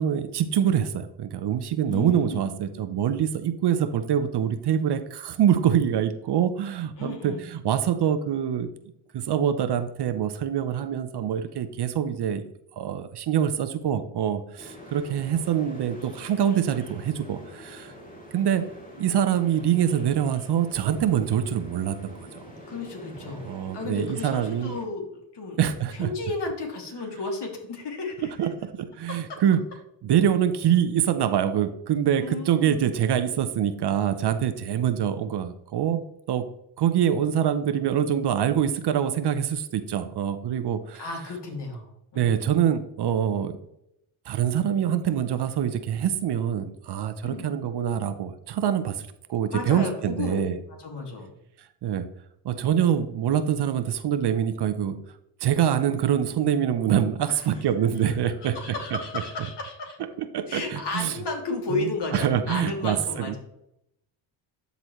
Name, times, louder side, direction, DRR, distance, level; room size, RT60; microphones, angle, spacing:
voice 1, 0.0-8.7 9.1-12.4 12.8-17.9 18.3-18.6 19.0-22.3 23.4-24.7 25.6-26.1 28.2-29.6 30.0-36.5 36.8-41.1 42.1-43.6 44.3-50.6 51.8-52.1 52.4-55.0 55.4-58.6 58.9-59.0 60.2-61.1 61.7-63.4, right 9 dB, 55° right, 11 dB, 0.8 m, -25 dB
voice 2, 1.9-2.5 7.0-7.4 22.7-23.4 23.7-25.0 25.3-25.6 25.9-28.5 32.2-32.9 41.0-42.4 47.2-47.5 49.5-50.4 50.7-51.3 57.2-57.4 58.4-60.0 60.5-63.4, left 3 dB, 55° left, 2 dB, 2.4 m, -33 dB
sound 1, 14.6-24.8, left 1 dB, 15° left, 2.7 m, -45 dB
11.5 x 4.1 x 3.1 m, 0.79 s
supercardioid pair, 60°, 50 cm